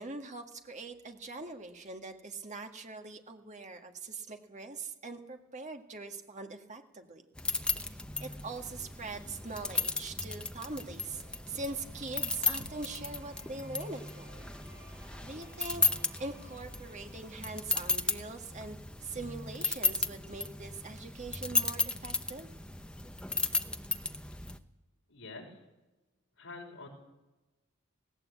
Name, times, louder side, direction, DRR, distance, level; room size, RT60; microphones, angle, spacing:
voice 1, 0.0-7.2 7.8-14.5 15.2-15.8 16.2-22.5, right 3 dB, 35° right, 5 dB, 1.8 m, -42 dB
sound 1, 7.4-24.6, left 4 dB, 5° left, 0.8 m, -35 dB
sound 2, 11.0-17.9, right 1 dB, 15° right, 7.2 m, -59 dB
voice 2, 25.1-25.6 26.4-26.9, left 3 dB, 70° left, 1 dB, 5.8 m, -46 dB
18.5 x 18.5 x 8.3 m, 1.1 s
head